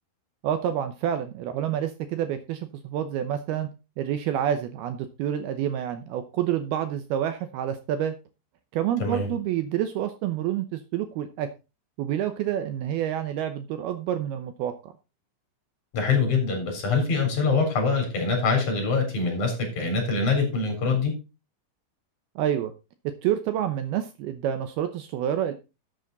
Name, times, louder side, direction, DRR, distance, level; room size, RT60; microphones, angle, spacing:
voice 1, 0.4-3.7 4.0-8.1 8.7-11.5 12.0-14.9 22.4-22.7 23.0-25.5, right 10 dB, 75° right, 9 dB, 2.5 m, -28 dB
voice 2, 15.9-21.1, left 4 dB, 45° left, 3 dB, 4.9 m, -24 dB
12.5 x 7.7 x 4.0 m, 0.28 s
omnidirectional pair, 5.0 m